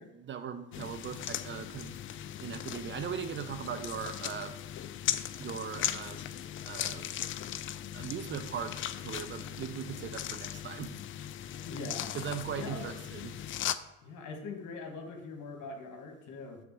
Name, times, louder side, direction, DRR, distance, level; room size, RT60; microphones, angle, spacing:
voice 1, 0.2-1.9 2.4-4.5 5.4-7.1 7.9-8.7 9.0-10.9 12.1-13.3, right 8 dB, 30° right, 8 dB, 0.5 m, -39 dB
sound 1, 0.7-13.8, left 11 dB, 35° left, 0.4 m, -38 dB
voice 2, 11.6-12.1 12.5-12.9 14.0-16.6, left 3 dB, 50° left, 3 dB, 1.5 m, -42 dB
5.9 x 3.6 x 6.0 m, 1.0 s
hypercardioid pair, 65°, 37 cm